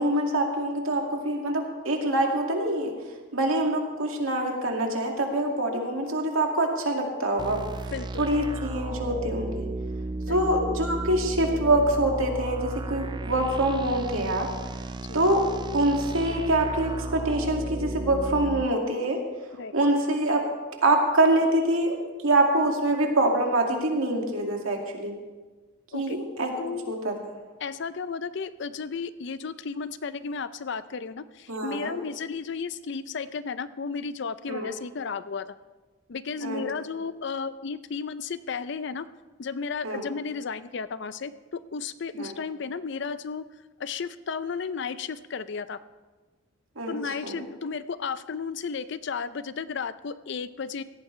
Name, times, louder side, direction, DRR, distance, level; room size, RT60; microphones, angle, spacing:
voice 1, 0.0-2.9 3.3-7.9 8.2-9.7 10.3-14.5 15.1-15.4 15.7-19.2 19.7-20.4 20.8-22.0 22.2-25.1 25.9-26.5 26.9-27.1 31.5-32.0 34.5-34.7 36.4-36.6 39.8-40.1 42.1-42.3 46.8-47.4, right 1 dB, 85° right, 1 dB, 2.2 m, -25 dB
sound 1, 7.4-18.7, right 2 dB, 20° right, 0.3 m, -34 dB
voice 2, 7.9-8.3 10.3-10.4 15.1-15.2 19.6-19.8 25.9-26.2 26.6-26.9 27.6-35.5 36.1-39.1 39.4-43.5 43.8-45.8 46.9-50.8, left 5 dB, 55° left, 14 dB, 0.5 m, -33 dB
17.0 x 14.0 x 3.2 m, 1.3 s
head